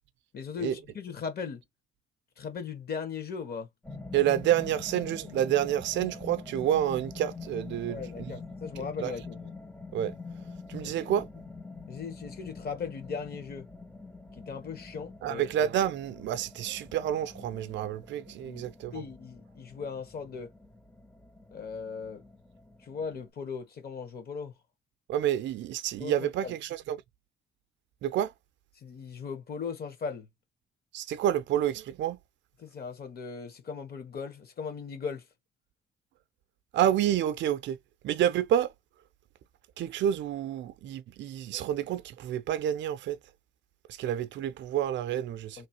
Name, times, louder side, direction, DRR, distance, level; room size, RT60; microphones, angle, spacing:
voice 1, 0.3-1.6 2.4-3.7 7.9-9.5 10.8-11.1 11.9-13.7 14.4-15.4 18.4-20.5 21.5-22.2 22.8-24.5 26.0-26.6 28.7-30.3 32.6-35.3 45.6-45.7, left 6 dB, 50° left, 1.4 m, -38 dB
sound 1, 3.8-23.3, left 4 dB, 5° left, 0.5 m, -45 dB
voice 2, 4.1-8.3 9.0-9.1 9.9-10.1 10.7-11.3 15.2-18.9 25.1-27.0 28.0-28.3 30.9-32.2 36.7-37.8 38.0-38.7 39.8-43.2 43.9-45.6, right 11 dB, 65° right, 0.4 m, -29 dB
3.0 x 2.4 x 2.8 m
cardioid pair, 90°, 20 cm